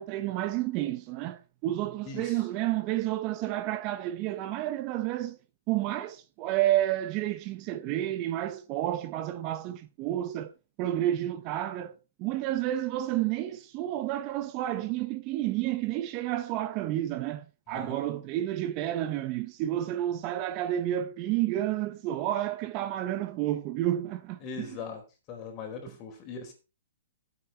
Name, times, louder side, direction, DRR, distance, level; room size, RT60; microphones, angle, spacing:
voice 1, 0.0-5.4 5.7-10.5 10.8-24.7, right 13 dB, 30° right, 0.7 m, -30 dB
voice 2, 2.0-2.4 17.7-18.0 24.4-25.0 25.3-26.5, left 5 dB, 25° left, 4.3 m, -40 dB
13.0 x 8.1 x 4.3 m
hypercardioid pair, 160°, 0 cm